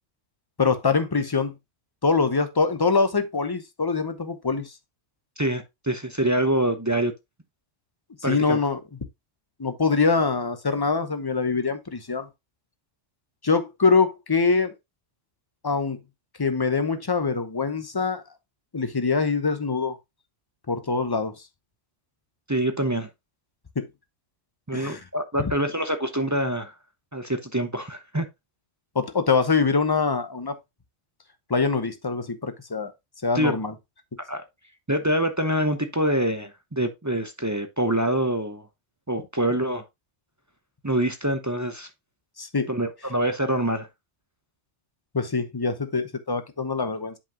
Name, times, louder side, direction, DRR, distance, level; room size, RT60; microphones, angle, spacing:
voice 1, 0.6-1.5 2.0-4.7 8.3-8.8 9.6-12.3 13.4-14.7 15.6-16.0 16.4-18.2 18.7-20.0 20.7-21.3 23.8-23.9 24.7-25.0 25.4-25.5 28.9-30.5 31.5-32.9 33.2-33.7 42.4-42.7 45.1-47.1, left 4 dB, 25° left, 0.7 m, -24 dB
voice 2, 5.4-7.1 8.2-8.6 22.5-23.1 24.7-26.7 27.1-28.3 33.3-33.6 34.3-34.4 34.9-38.7 39.1-39.8 40.8-41.9 42.7-43.9, right 1 dB, 20° right, 0.5 m, -25 dB
7.7 x 5.6 x 2.7 m
omnidirectional pair, 1.3 m